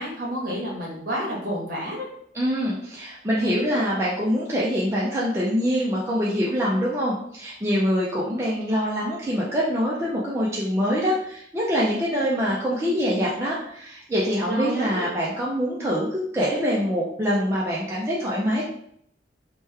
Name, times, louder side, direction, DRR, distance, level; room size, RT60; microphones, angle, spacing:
voice 1, 0.0-2.1 14.5-15.1, equal, 50° right, -4 dB, 1.1 m, -30 dB
voice 2, 2.3-18.6, equal, 15° right, -6 dB, 0.4 m, -24 dB
3.1 x 2.2 x 3.2 m, 0.69 s
head